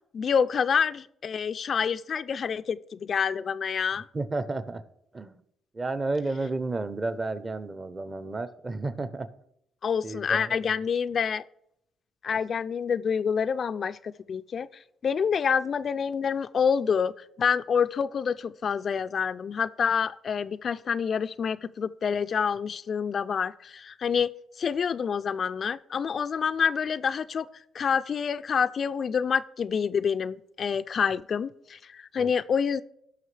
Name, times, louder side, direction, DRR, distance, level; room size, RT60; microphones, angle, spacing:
voice 1, 0.1-4.1 9.8-11.4 12.2-14.7 15.0-17.1 17.4-24.3 24.6-27.5 27.7-32.8, left 6 dB, 50° left, 12 dB, 0.3 m, -27 dB
voice 2, 4.1-4.8 5.1-5.3 5.7-9.3 10.0-10.6 12.3-12.4 32.2-32.3, right 3 dB, 25° right, 13 dB, 0.7 m, -32 dB
16.0 x 6.0 x 3.3 m, 0.76 s
cardioid pair, 90°, 0 cm